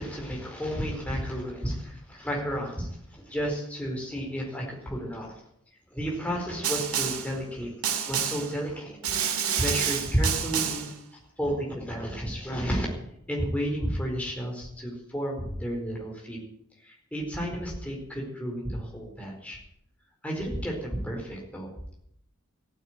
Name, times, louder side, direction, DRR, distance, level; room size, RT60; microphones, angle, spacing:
voice 1, 0.0-5.3 5.9-9.1 9.6-10.9 11.4-12.9 13.3-16.4 16.8-19.6 20.2-21.7, equal, 5° left, -1 dB, 4.4 m, -32 dB
Snare drum, 6.6-7.3 7.8-8.5 9.0-10.9, right 8 dB, 85° right, 2.0 m, -28 dB
15.0 x 9.2 x 9.3 m, 0.72 s
head